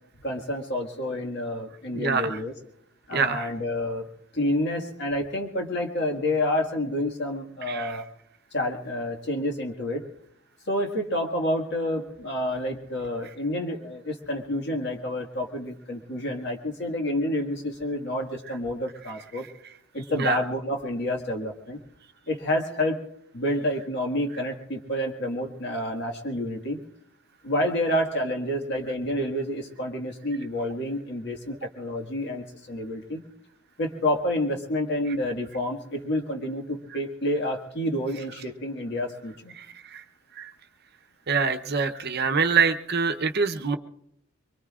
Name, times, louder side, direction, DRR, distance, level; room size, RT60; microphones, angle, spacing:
voice 1, 0.2-2.5 3.1-4.1 4.3-8.0 8.5-10.1 10.7-19.5 19.9-21.8 22.3-23.0 23.3-26.8 27.4-33.2 33.8-39.5, left 1 dB, 50° left, 2 dB, 1.8 m, -29 dB
voice 2, 1.9-2.4 3.1-3.5 7.7-8.0 20.2-20.4 39.6-39.7 39.9-40.0 40.4-40.5 41.3-43.8, right 5 dB, 45° right, 7 dB, 0.8 m, -25 dB
24.0 x 23.5 x 2.5 m, 0.74 s
head